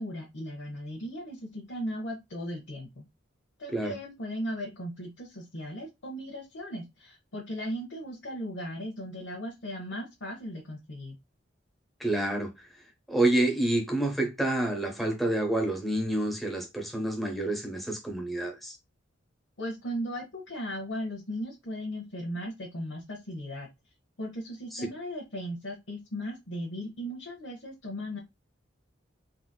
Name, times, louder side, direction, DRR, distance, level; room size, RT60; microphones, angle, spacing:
voice 1, 0.0-3.0 3.6-11.2 19.6-23.7 24.2-28.2, equal, 80° left, 0.8 m, -37 dB
voice 2, 12.0-18.8 24.7-24.9, right 1 dB, ahead, 0.8 m, -28 dB
3.8 x 2.6 x 2.2 m
head